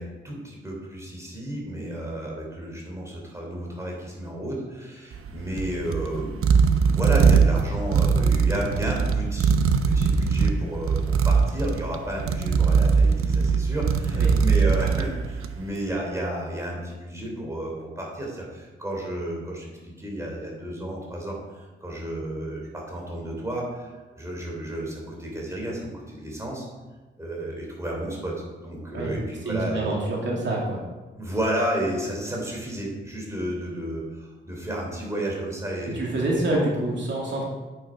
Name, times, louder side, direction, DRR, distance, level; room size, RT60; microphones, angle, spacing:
voice 1, 0.0-9.5 9.9-26.7 27.2-29.9 31.2-36.7, right 1 dB, 15° right, -2 dB, 3.5 m, -32 dB
sound 1, 5.1-15.7, right 5 dB, 90° right, 0.8 m, -21 dB
voice 2, 14.0-14.3 28.9-29.1 29.4-30.8 35.9-37.4, right 2 dB, 60° right, -3 dB, 2.5 m, -26 dB
9.7 x 9.1 x 5.2 m, 1.2 s
wide cardioid pair, 130°, 21 cm